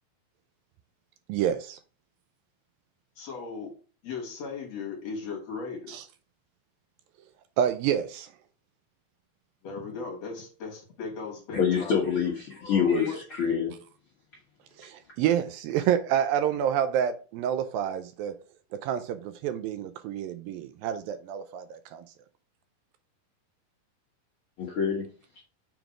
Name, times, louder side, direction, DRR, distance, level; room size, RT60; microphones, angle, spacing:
voice 1, 1.3-1.8 5.9-6.0 7.6-8.3 14.8-18.3 18.8-22.0, right 9 dB, 80° right, 2.3 m, -28 dB
voice 2, 3.2-3.7 4.0-6.0 9.6-11.9 12.2-13.2, left 4 dB, 55° left, 2.4 m, -37 dB
voice 3, 11.5-12.3 12.7-13.7 24.6-25.0, left 6 dB, 90° left, 1.1 m, -25 dB
7.0 x 4.0 x 4.9 m
omnidirectional pair, 4.4 m